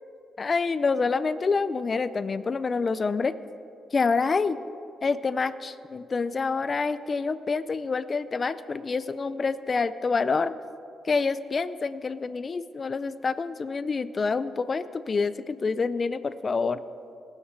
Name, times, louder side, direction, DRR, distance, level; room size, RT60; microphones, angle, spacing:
voice 1, 0.4-3.3 3.9-4.6 5.0-10.6 11.0-16.8, left 4 dB, 35° left, 14 dB, 0.4 m, -27 dB
18.5 x 6.5 x 6.1 m, 2.6 s
cardioid pair, 105°, 0 cm